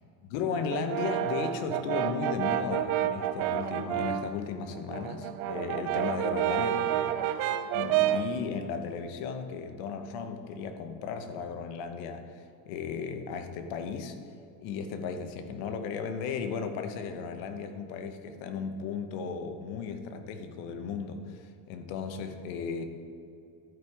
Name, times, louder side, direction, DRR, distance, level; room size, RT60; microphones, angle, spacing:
voice 1, 0.3-7.2 7.6-14.2 14.6-22.8, left 5 dB, 75° left, 8 dB, 1.1 m, -35 dB
Brass instrument, 0.7-4.4 4.7-8.4, right 12 dB, 70° right, 0.6 m, -29 dB
11.5 x 5.3 x 4.7 m, 2.5 s
supercardioid pair, 120°, 48 cm